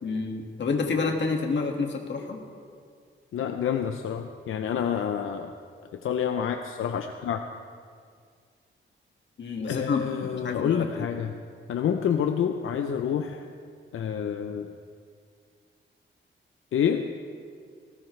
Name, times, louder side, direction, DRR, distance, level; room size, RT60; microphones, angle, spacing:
voice 1, 0.0-2.4 9.4-11.1, left 4 dB, 60° left, 2 dB, 1.9 m, -29 dB
voice 2, 3.3-5.5 6.0-7.4 9.7-11.3 11.7-13.4 13.9-14.7 16.7-17.1, left 8 dB, 85° left, 6 dB, 0.7 m, -28 dB
19.0 x 18.0 x 3.3 m, 2.1 s
wide cardioid pair, 120°, 21 cm